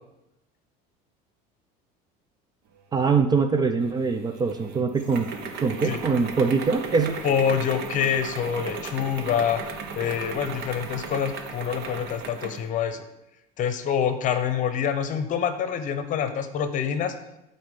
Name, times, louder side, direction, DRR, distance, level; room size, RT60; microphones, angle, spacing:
voice 1, 2.9-5.3 5.6-7.2, right 5 dB, 20° right, 9 dB, 0.4 m, -23 dB
sound 1, 3.9-12.7, right 5 dB, 60° right, 1.1 m, -36 dB
voice 2, 7.2-9.6 9.9-13.0 13.6-17.1, left 8 dB, 40° left, 10 dB, 0.9 m, -26 dB
12.0 x 4.3 x 5.3 m, 0.87 s
cardioid pair, 140°, 19 cm